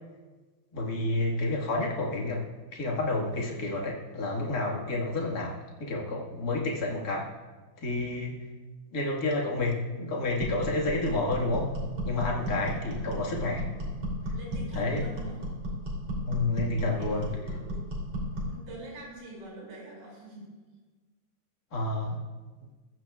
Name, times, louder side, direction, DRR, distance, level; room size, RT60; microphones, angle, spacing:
voice 1, 0.7-2.4 2.7-7.3 7.8-8.5 8.9-11.8 12.0-13.6 14.7-15.1 16.2-17.6 21.7-22.2, left 2 dB, 75° left, -2 dB, 0.8 m, -30 dB
sound 1, 10.4-18.6, equal, 35° right, 3.9 m, -34 dB
voice 2, 12.6-13.6 14.3-15.4 16.8-17.8 18.5-20.5, right 1 dB, 65° right, -4 dB, 7.1 m, -45 dB
23.0 x 15.5 x 2.4 m, 1.3 s
omnidirectional pair, 4.8 m